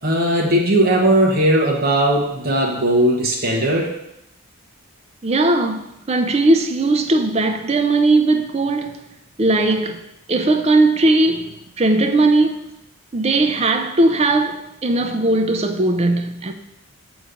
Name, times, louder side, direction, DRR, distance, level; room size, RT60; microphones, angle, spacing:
voice 1, 0.0-3.9, right 1 dB, 45° right, 1.0 m, -18 dB
voice 2, 5.2-9.0 9.4-10.0 10.3-12.6 13.1-16.5, right 2 dB, 30° right, 0.5 m, -18 dB
6.7 x 3.1 x 5.0 m
head